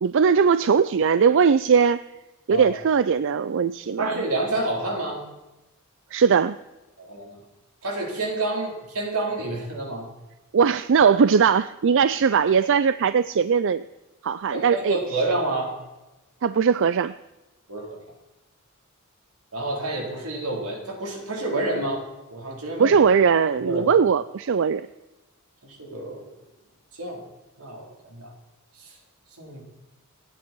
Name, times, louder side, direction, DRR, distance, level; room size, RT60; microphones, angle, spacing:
voice 1, 0.0-2.0 2.5-4.1 6.1-6.6 10.5-13.8 14.2-15.0 16.4-17.1 22.8-24.9, right 6 dB, 60° right, 15 dB, 0.4 m, -19 dB
voice 2, 2.5-2.8 4.0-5.2 7.0-7.4 7.8-10.1 14.5-15.8 17.7-18.0 19.5-22.0 22.3-23.0 23.6-23.9 25.6-26.3 27.0-27.2 27.6-28.3 28.8-28.9 29.4-29.6, right 2 dB, 85° right, 0 dB, 4.4 m, -29 dB
29.0 x 10.0 x 4.6 m, 1.0 s
head